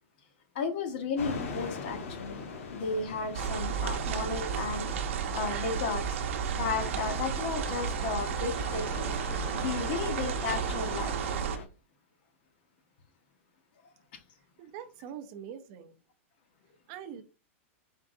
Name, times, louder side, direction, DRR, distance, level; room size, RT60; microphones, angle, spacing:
voice 1, 0.5-5.0 5.3-6.0 6.5-9.1 9.5-11.2, left 5 dB, 45° left, 1.0 m, -34 dB
sound 1, 1.2-11.7, left 4 dB, 80° left, 1.2 m, -42 dB
sound 2, 3.3-11.6, right 7 dB, 65° right, 0.7 m, -32 dB
voice 2, 14.6-15.9 16.9-17.2, right 9 dB, 35° right, 0.5 m, -43 dB
4.5 x 3.7 x 2.6 m
supercardioid pair, 170°, 7 cm